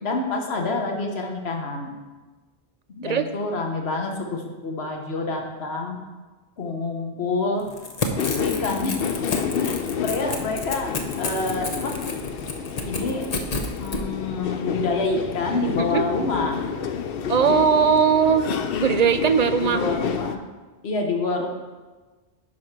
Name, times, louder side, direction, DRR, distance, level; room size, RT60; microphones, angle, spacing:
voice 1, 0.0-1.9 2.9-6.0 6.6-7.6 8.4-9.1 9.6-9.7 10.0-10.9 11.2-12.0 12.8-13.2 13.8-16.6 19.6-20.4 20.8-21.5, left 3 dB, 90° left, 2 dB, 1.3 m, -27 dB
Crackle / Tearing, 7.6-14.0, left 3 dB, 40° left, 0.9 m, -31 dB
sound 1, 8.2-20.4, left 7 dB, 70° left, 0.8 m, -29 dB
voice 2, 17.3-18.5 18.8-19.8, right 6 dB, 50° right, 9 dB, 0.5 m, -19 dB
10.5 x 4.8 x 5.9 m, 1.3 s
omnidirectional pair, 1.0 m